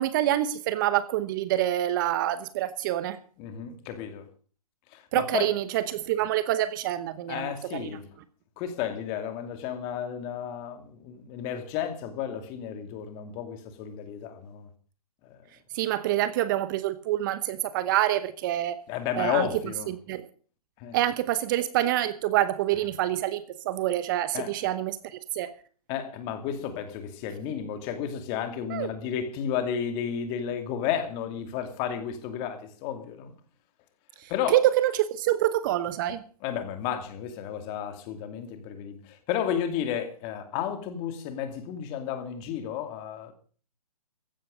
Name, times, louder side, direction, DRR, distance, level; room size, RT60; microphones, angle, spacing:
voice 1, 0.0-3.2 5.1-7.9 15.7-18.8 19.1-19.5 19.9-20.2 20.9-25.0 25.3-25.5 28.7-28.9 34.2-36.2, right 13 dB, 35° right, 0.9 m, -26 dB
voice 2, 3.4-4.2 4.9-5.5 7.3-8.1 8.6-14.7 15.3-15.4 18.9-19.9 20.8-21.0 24.3-24.6 25.9-33.3 34.3-34.6 36.4-43.3, left 9 dB, 25° left, 2.5 m, -32 dB
15.5 x 11.5 x 5.2 m
hypercardioid pair, 145°, 19 cm